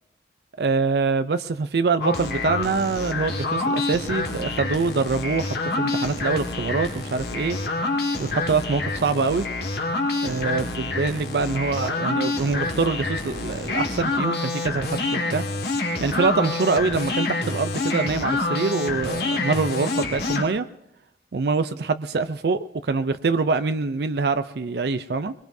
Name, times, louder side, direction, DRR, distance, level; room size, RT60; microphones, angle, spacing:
voice 1, 0.6-7.6 8.2-9.5 10.2-15.4 16.0-20.6 21.3-25.3, right 4 dB, 65° right, 11 dB, 0.5 m, -24 dB
sound 1, 2.0-20.4, left 3 dB, 65° left, 1.8 m, -27 dB
22.5 x 22.5 x 2.7 m, 0.87 s
head